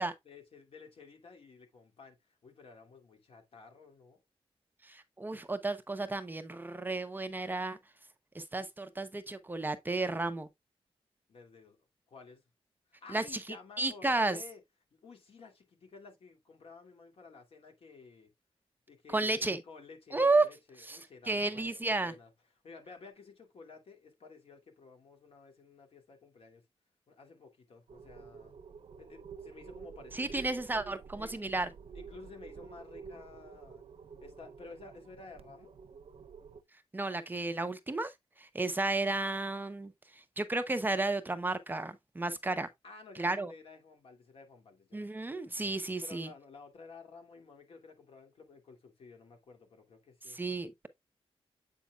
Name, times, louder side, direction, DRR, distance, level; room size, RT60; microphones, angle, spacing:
voice 1, 0.2-4.2 11.3-11.8 12.1-12.4 12.9-14.6 14.9-18.3 18.9-22.3 22.6-26.6 27.1-28.5 29.0-30.4 31.2-31.4 31.9-33.8 34.2-35.7 42.8-45.3 46.0-50.4, left 4 dB, 65° left, 2.4 m, -53 dB
voice 2, 4.8-7.8 8.3-10.5 13.1-13.2 13.8-14.4 19.1-19.6 20.1-20.5 20.9-21.0 21.3-22.1 30.1-31.7 36.9-38.1 38.4-39.9 40.4-42.7 43.2-43.5 44.9-46.3 50.3-50.9, right 2 dB, 20° right, 0.7 m, -32 dB
sound 1, 27.9-36.6, right 5 dB, 70° right, 0.8 m, -50 dB
8.2 x 5.7 x 2.3 m
wide cardioid pair, 155°, 10 cm